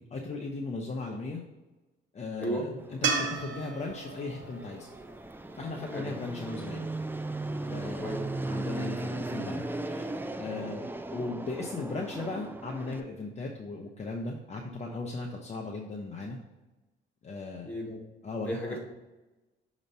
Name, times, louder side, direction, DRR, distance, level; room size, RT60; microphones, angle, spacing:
voice 1, 0.0-1.4 2.1-4.9 5.6-6.9 7.7-8.2 8.5-16.4 17.2-17.8 18.2-18.8, left 3 dB, 35° left, 0 dB, 0.8 m, -37 dB
Fixed-wing aircraft airplane, 2.8-13.0, right 2 dB, 10° right, 0.4 m, -37 dB
sound 1, 3.0-6.3 9.5-9.6, right 5 dB, 70° right, 1.0 m, -35 dB
voice 2, 7.8-8.2 10.6-10.7 17.7-18.1 18.5-18.8, equal, 5° left, -3 dB, 2.0 m, -35 dB
6.4 x 3.1 x 5.4 m, 1.1 s
cardioid pair, 90°, 20 cm